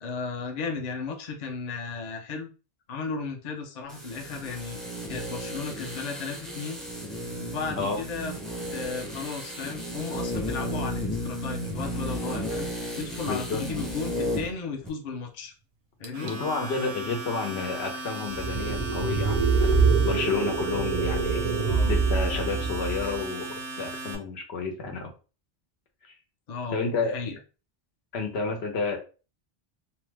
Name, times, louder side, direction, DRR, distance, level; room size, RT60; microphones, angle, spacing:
voice 1, 0.0-2.5 2.9-6.8 7.4-8.3 8.7-15.5 16.0-16.3 21.6-21.9 26.5-27.4, left 4 dB, 50° left, 2 dB, 0.6 m, -35 dB
sound 1, 3.9-14.6 14.8-14.9, equal, ahead, 0.3 m, -34 dB
voice 2, 13.2-13.6 16.2-19.7 20.0-21.5 21.9-25.1 26.1-26.2 26.7-27.2 28.1-29.0, left 4 dB, 90° left, 3 dB, 1.0 m, -30 dB
Domestic sounds home sounds, 16.0-24.2, right 2 dB, 85° right, 0.9 m, -37 dB
sound 2, 18.3-23.2, right 5 dB, 50° right, 0.5 m, -25 dB
2.7 x 2.1 x 3.2 m, 0.33 s
omnidirectional pair, 1.0 m